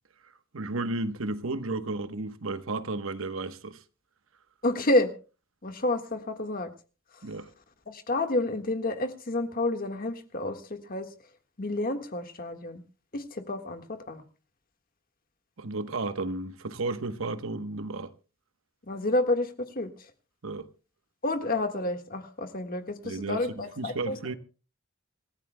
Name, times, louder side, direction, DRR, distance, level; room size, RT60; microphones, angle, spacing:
voice 1, 0.5-3.8 7.2-7.5 15.6-18.1 20.4-20.7 23.0-24.3, right 2 dB, 80° right, 1.1 m, -33 dB
voice 2, 4.6-5.1 5.6-6.7 7.2-7.3 7.9-11.1 11.6-12.8 13.1-14.2 18.9-20.1 21.2-24.2, left 2 dB, 45° left, 1.6 m, -29 dB
27.0 x 15.0 x 2.2 m
head